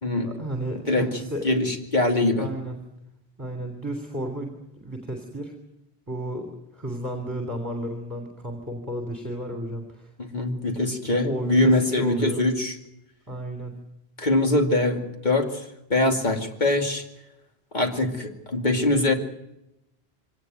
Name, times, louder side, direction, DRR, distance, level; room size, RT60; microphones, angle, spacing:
voice 1, 0.2-1.4 2.4-2.8 3.4-5.5 6.1-10.1 11.2-12.4 13.3-13.8, right 1 dB, 20° right, 4 dB, 3.3 m, -32 dB
voice 2, 0.9-1.2 1.4-2.5 10.2-12.8 14.2-15.6 15.9-17.0 17.7-19.1, left 2 dB, 45° left, 3 dB, 2.6 m, -23 dB
24.0 x 18.0 x 9.2 m, 0.87 s
omnidirectional pair, 1.1 m